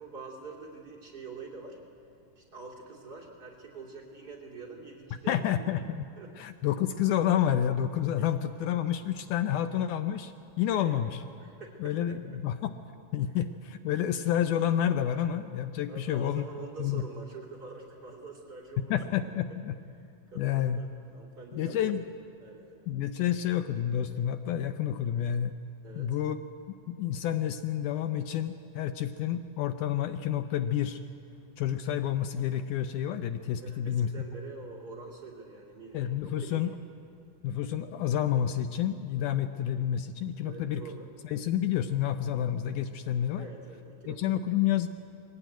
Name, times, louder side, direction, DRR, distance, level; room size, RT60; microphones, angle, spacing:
voice 1, 0.0-1.8 2.4-5.6 6.2-6.3 8.2-8.3 10.7-11.0 11.4-12.2 15.9-19.0 19.2-19.3 20.3-20.9 21.1-22.0 22.4-22.7 25.8-26.2 33.6-36.1 36.5-36.7 40.4-41.1 43.4-44.4, right 4 dB, 30° right, -3 dB, 2.9 m, -45 dB
voice 2, 5.3-6.1 6.4-10.3 10.6-11.2 11.8-12.8 13.1-16.4 16.8-17.0 18.9-19.8 20.4-20.8 21.5-22.0 22.9-25.6 26.0-26.4 26.9-31.0 31.6-34.1 35.9-36.7 37.4-40.8 41.2-43.5 44.1-44.9, left 10 dB, 75° left, 9 dB, 2.1 m, -29 dB
22.5 x 17.5 x 9.2 m, 2.5 s
omnidirectional pair, 3.9 m